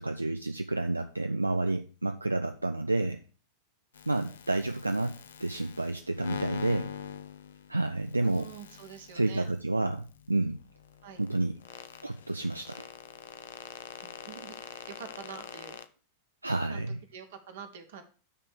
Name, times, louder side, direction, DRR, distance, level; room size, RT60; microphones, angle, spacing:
voice 1, 0.0-3.2 4.1-6.9 7.7-8.5 9.1-10.6 11.2-11.6 12.0-12.9 16.4-17.0, right 2 dB, 85° right, 7 dB, 0.4 m, -30 dB
sound 1, 3.9-15.9, left 7 dB, 65° left, 0.5 m, -44 dB
voice 2, 8.2-9.5 11.0-11.2 14.0-15.8 16.7-16.8 17.1-18.0, right 7 dB, 55° right, 7 dB, 1.2 m, -46 dB
9.8 x 3.3 x 6.2 m, 0.38 s
figure-of-eight pair, 90°, 0 cm